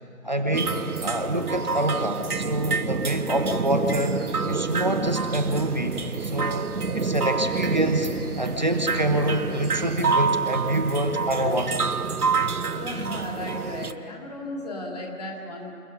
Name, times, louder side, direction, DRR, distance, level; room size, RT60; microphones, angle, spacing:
voice 1, 0.2-0.8 1.0-4.2 4.5-11.8, right 1 dB, 30° right, 5 dB, 1.1 m, -26 dB
sound 1, 0.5-13.9, right 4 dB, 75° right, 1.2 m, -27 dB
voice 2, 12.4-15.7, left 1 dB, 25° left, -1 dB, 2.7 m, -35 dB
28.0 x 17.0 x 5.5 m, 2.5 s
figure-of-eight pair, 165°, 45 cm